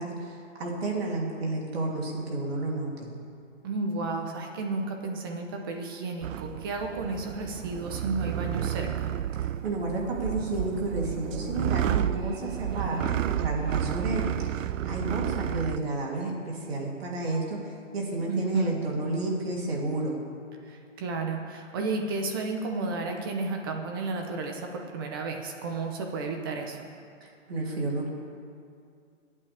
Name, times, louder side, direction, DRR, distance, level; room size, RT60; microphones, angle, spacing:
voice 1, 0.0-3.1 9.4-20.2 27.2-28.1, right 2 dB, 55° right, -2 dB, 3.2 m, -31 dB
voice 2, 3.6-9.1 18.3-18.8 20.6-26.9, right 3 dB, 20° right, 3 dB, 0.8 m, -32 dB
sound 1, 6.2-15.8, right 11 dB, 85° right, 0.5 m, -31 dB
24.5 x 8.6 x 3.5 m, 2.3 s
hypercardioid pair, 165°, 38 cm